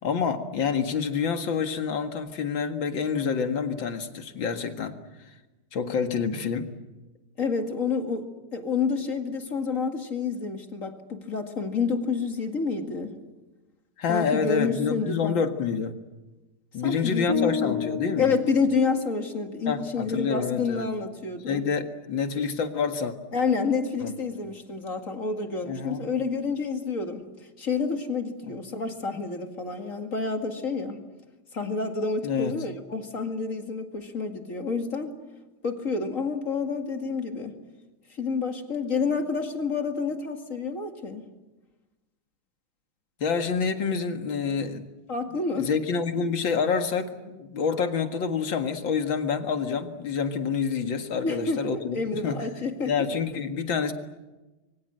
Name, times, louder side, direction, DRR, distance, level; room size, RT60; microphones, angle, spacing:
voice 1, 0.0-4.9 5.7-6.7 14.0-15.9 16.7-18.3 19.7-20.9 21.5-23.1 24.0-24.1 25.6-26.0 32.2-32.6 43.2-44.8 45.3-52.5 52.9-53.9, left 6 dB, 65° left, 6 dB, 2.5 m, -27 dB
voice 2, 7.4-13.1 14.1-15.3 16.8-17.8 18.2-21.6 23.3-27.2 27.6-31.0 31.5-35.1 35.6-37.5 38.1-41.3 45.1-45.7 51.2-51.6 51.9-52.9, left 4 dB, 40° left, 5 dB, 2.4 m, -29 dB
sound 1, 17.3-19.5, left 6 dB, 15° left, 1.1 m, -31 dB
26.5 x 23.5 x 7.8 m, 1.1 s
omnidirectional pair, 2.3 m